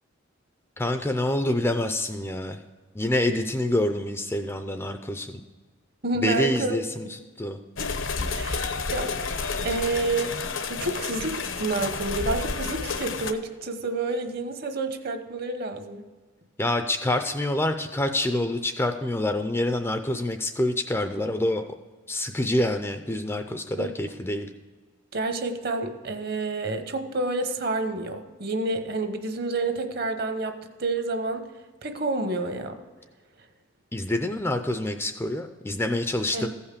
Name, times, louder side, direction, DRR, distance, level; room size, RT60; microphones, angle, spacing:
voice 1, 0.8-2.6 2.9-5.4 6.2-7.1 7.4-7.6 16.6-21.7 22.1-24.5 33.9-36.5, left 1 dB, 10° left, 7 dB, 0.4 m, -26 dB
voice 2, 6.0-6.8 7.0-7.1 7.8-7.9 8.3-10.3 10.7-16.0 23.8-23.9 25.1-31.5 31.8-32.8 36.3-36.5, right 2 dB, 50° right, 7 dB, 1.0 m, -29 dB
sound 1, 7.8-13.3, left 4 dB, 70° left, 0.8 m, -30 dB
15.0 x 5.6 x 6.6 m, 1.4 s
head